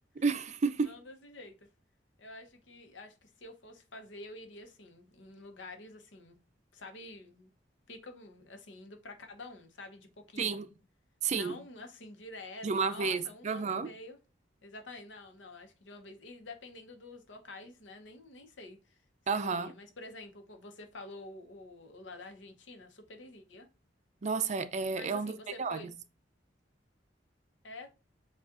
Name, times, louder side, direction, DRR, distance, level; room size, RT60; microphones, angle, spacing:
voice 1, 0.2-0.9 10.4-10.7 11.2-11.6 12.6-13.9 19.3-19.7 24.2-25.3 25.6-25.9, right 5 dB, 40° right, 0.4 m, -31 dB
voice 2, 0.8-1.6 2.2-6.4 6.7-7.5 7.9-10.7 11.3-14.2 14.6-19.0 19.3-23.7 24.9-25.9 27.6-27.9, left 2 dB, 85° left, 0.9 m, -48 dB
7.1 x 2.4 x 2.5 m
head